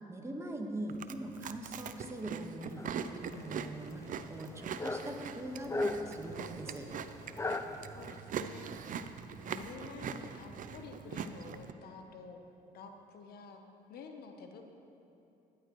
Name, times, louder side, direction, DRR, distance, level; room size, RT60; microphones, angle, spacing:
voice 1, 0.1-6.9, right 1 dB, 15° right, 2 dB, 1.5 m, -42 dB
Chewing mastication, 0.9-11.7, right 7 dB, 55° right, 0.6 m, -42 dB
sound 1, 2.8-8.2, left 2 dB, 15° left, 0.6 m, -40 dB
voice 2, 7.9-8.8 9.4-12.4 12.7-13.6 13.9-14.7, left 4 dB, 70° left, 5 dB, 1.0 m, -49 dB
16.5 x 11.0 x 3.1 m, 2.8 s
supercardioid pair, 75°, 17 cm